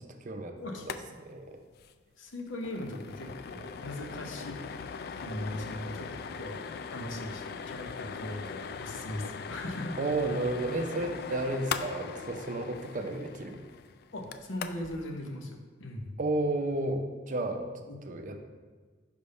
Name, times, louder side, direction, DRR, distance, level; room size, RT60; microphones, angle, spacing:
voice 1, 0.0-0.6 0.9-1.6 10.0-13.6 16.2-17.7 18.1-18.5, right 2 dB, 45° right, 5 dB, 0.5 m, -32 dB
sound 1, 0.8-1.0 1.3-1.4 1.7-1.9 2.3-15.0, left 6 dB, 55° left, 0.3 m, -40 dB
voice 2, 2.2-4.6 5.1-6.1 6.4-6.6 6.9-10.0 14.1-16.2 17.9-18.2, left 1 dB, 90° left, 3 dB, 0.8 m, -39 dB
5.2 x 3.4 x 5.4 m, 1.4 s
head